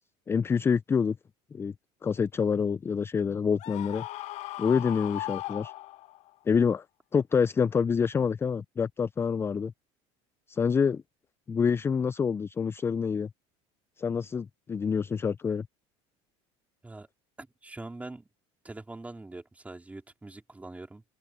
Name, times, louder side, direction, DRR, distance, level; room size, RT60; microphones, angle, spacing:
voice 1, 0.3-1.2 1.5-1.7 2.0-4.1 4.6-5.7 6.5-6.8 7.1-9.7 10.5-11.0 11.5-13.3 14.0-15.7, left 6 dB, 20° left, 0.3 m, -27 dB
Screaming, 3.6-6.3, left 16 dB, 55° left, 0.6 m, -38 dB
voice 2, 17.4-18.3 18.6-21.0, right 2 dB, 10° right, 3.6 m, -43 dB
open air
supercardioid pair, 110°, 13 cm